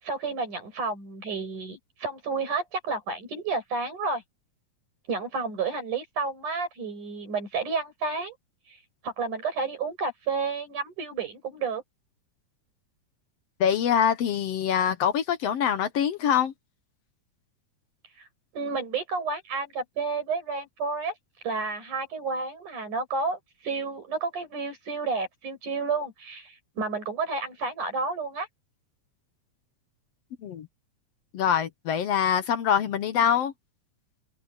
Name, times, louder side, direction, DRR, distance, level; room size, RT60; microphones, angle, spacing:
voice 1, 0.0-4.2 5.1-8.4 8.7-8.8 9.0-11.8 18.5-21.1 21.4-28.5, right 4 dB, 85° right, 8.2 m, -31 dB
voice 2, 13.6-16.5 30.4-30.7 31.3-33.5, left 8 dB, 65° left, 1.8 m, -24 dB
open air
omnidirectional pair, 3.4 m